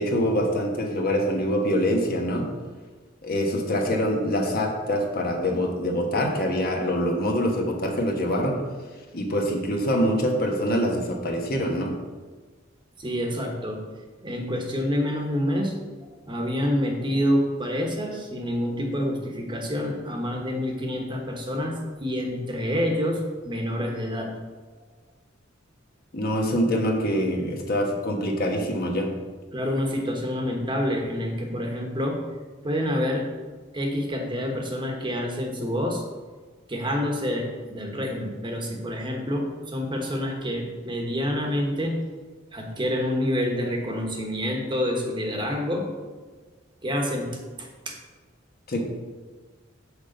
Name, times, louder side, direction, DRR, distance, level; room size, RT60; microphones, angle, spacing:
voice 1, 0.0-2.5 3.2-8.6 9.1-11.9 26.1-29.1 48.7-48.8, equal, 50° left, 1 dB, 1.2 m, -25 dB
voice 2, 13.0-13.8 14.2-15.8 16.3-24.3 29.5-32.2 32.6-33.3 33.7-36.0 36.7-42.0 42.5-45.9 46.8-47.3 47.6-48.0, equal, 25° right, 1 dB, 1.2 m, -27 dB
6.5 x 5.2 x 6.5 m, 1.4 s
head